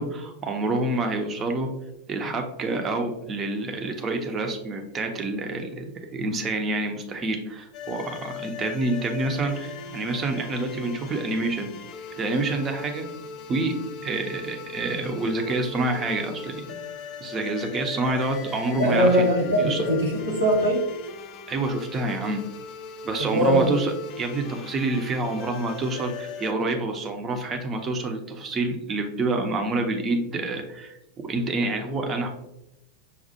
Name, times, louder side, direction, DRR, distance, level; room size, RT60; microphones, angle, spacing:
voice 1, 0.0-1.7 2.1-11.7 12.2-13.1 13.5-13.7 14.0-16.8 17.2-19.2 19.6-19.8 21.5-22.4 23.0-31.0 31.2-32.3, right 2 dB, 25° right, 4 dB, 0.6 m, -27 dB
sound 1, 7.7-26.5, left 5 dB, 40° left, 0.3 m, -40 dB
voice 2, 18.8-20.8 23.2-23.9, equal, 75° right, -2 dB, 1.4 m, -21 dB
5.3 x 2.4 x 2.7 m, 0.88 s
figure-of-eight pair, 90°, 0 cm